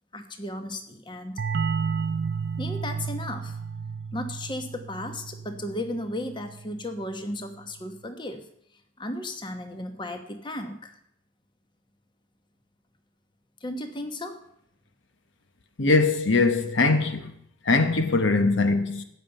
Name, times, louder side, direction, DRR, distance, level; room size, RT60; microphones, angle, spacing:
voice 1, 0.1-1.4 2.6-3.6 4.1-8.5 9.0-11.0 13.6-14.4, left 1 dB, 25° left, 1.2 m, -35 dB
sound 1, 1.4-6.8, right 5 dB, 55° right, 0.4 m, -32 dB
voice 2, 15.8-17.3 17.7-19.0, left 3 dB, 60° left, 0.9 m, -21 dB
14.5 x 5.6 x 9.0 m
head